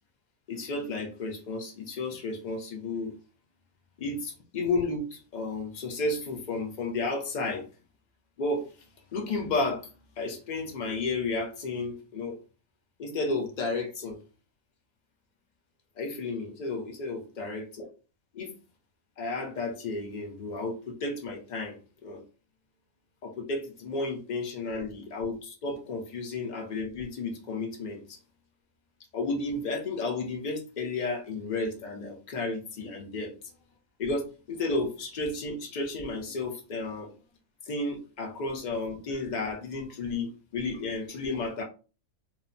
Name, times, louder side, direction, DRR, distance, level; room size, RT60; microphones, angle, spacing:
voice 1, 0.5-3.1 4.0-7.7 8.4-8.7 9.1-9.8 10.2-12.4 13.0-14.2 16.0-17.8 18.3-18.5 19.2-22.2 23.2-28.2 29.1-33.3 34.0-37.1 37.7-41.6, left 3 dB, 75° left, 1 dB, 0.4 m, -32 dB
2.8 x 2.1 x 2.5 m, 0.35 s
omnidirectional pair, 1.5 m